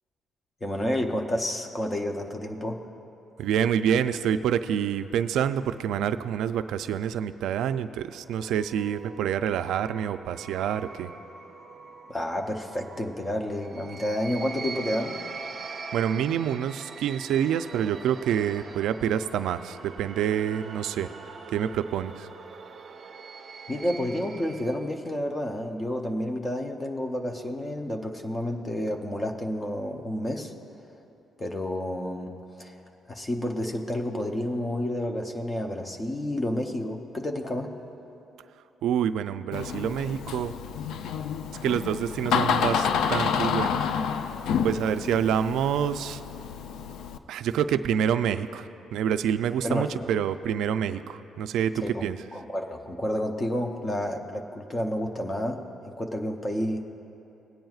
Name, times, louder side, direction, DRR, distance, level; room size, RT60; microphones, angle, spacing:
voice 1, 0.6-2.8 12.1-15.2 23.7-30.5 31.4-32.7 33.1-37.7 49.6-50.1 51.8-56.8, left 1 dB, 15° left, 3 dB, 0.6 m, -30 dB
voice 2, 3.4-11.1 15.9-21.1 21.5-22.3 38.8-40.5 41.6-43.8 44.6-46.2 47.3-51.7 52.0-52.2, right 9 dB, 80° right, 11 dB, 0.3 m, -27 dB
sound 1, 8.1-24.9, right 4 dB, 40° right, 0.6 m, -43 dB
Door, 39.5-47.2, left 7 dB, 85° left, 0.4 m, -29 dB
19.5 x 9.0 x 2.4 m, 2.9 s
cardioid pair, 175°, 0 cm